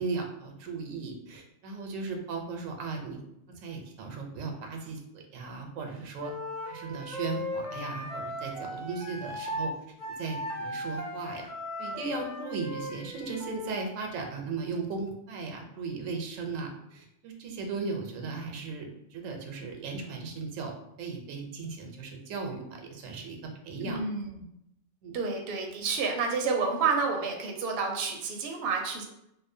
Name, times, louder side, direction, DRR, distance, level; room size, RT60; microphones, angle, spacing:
voice 1, 0.0-3.2 3.5-6.3 6.6-9.7 10.2-11.5 11.8-20.7 21.0-23.4 23.6-24.0 25.0-25.2, right 4 dB, 90° right, 2 dB, 1.0 m, -37 dB
Wind instrument woodwind instrument, 6.1-9.7 10.0-13.8, left 1 dB, 25° left, 0.8 m, -37 dB
voice 2, 23.8-24.4 25.1-29.0, right 4 dB, 60° right, 2 dB, 0.6 m, -29 dB
2.8 x 2.0 x 2.6 m, 0.79 s
omnidirectional pair, 1.3 m